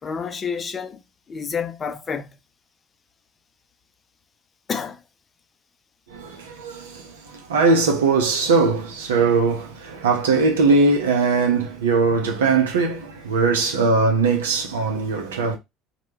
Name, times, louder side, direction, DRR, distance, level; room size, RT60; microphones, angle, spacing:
voice 1, 0.0-1.0 1.3-2.4 4.7-5.0, left 6 dB, 35° left, 0.5 m, -29 dB
voice 2, 6.1-15.6, right 4 dB, 80° right, 0.6 m, -20 dB
2.3 x 2.2 x 3.1 m
hypercardioid pair, 65°, 0 cm